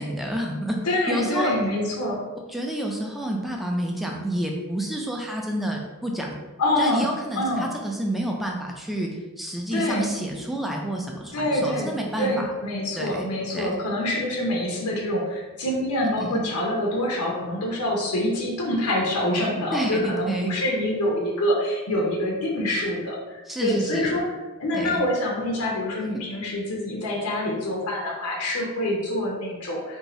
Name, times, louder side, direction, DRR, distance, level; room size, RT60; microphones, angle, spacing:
voice 1, 0.0-0.8 1.1-1.6 2.5-6.4 6.8-12.4 13.0-13.2 13.5-13.8 16.2-16.4 19.7-20.0 20.3-20.5 23.5-24.1 24.7-25.0, right 1 dB, ahead, 0 dB, 0.4 m, -29 dB
voice 2, 0.9-2.2 6.6-7.1 7.4-7.7 9.7-10.1 11.3-24.2 24.6-30.0, left 1 dB, 85° left, -2 dB, 0.7 m, -26 dB
2.6 x 2.3 x 4.1 m, 1.2 s
head